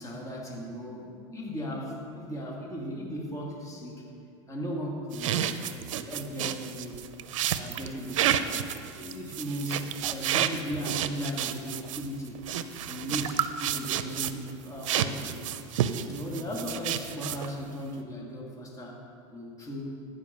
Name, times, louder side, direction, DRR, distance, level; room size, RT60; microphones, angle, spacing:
voice 1, 0.0-4.0 4.5-5.7 6.0-7.0 7.5-8.5 9.0-12.4 12.9-15.5 16.1-19.0 19.3-19.9, equal, 20° left, -2 dB, 2.0 m, -37 dB
sound 1, 5.1-14.5 14.8-17.6, right 10 dB, 80° right, 0.5 m, -30 dB
14.5 x 5.3 x 5.5 m, 2.4 s
hypercardioid pair, 95°, 16 cm